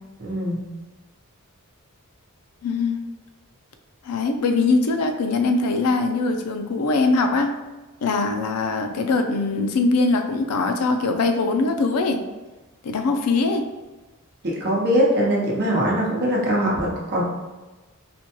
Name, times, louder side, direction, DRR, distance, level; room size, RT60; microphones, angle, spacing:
voice 1, 0.2-0.6 14.4-17.2, equal, 50° right, -3 dB, 0.8 m, -22 dB
voice 2, 2.6-3.0 4.0-7.5 8.0-12.2 12.8-13.6, left 3 dB, 80° left, 6 dB, 0.4 m, -22 dB
4.2 x 2.2 x 2.9 m, 1.2 s
head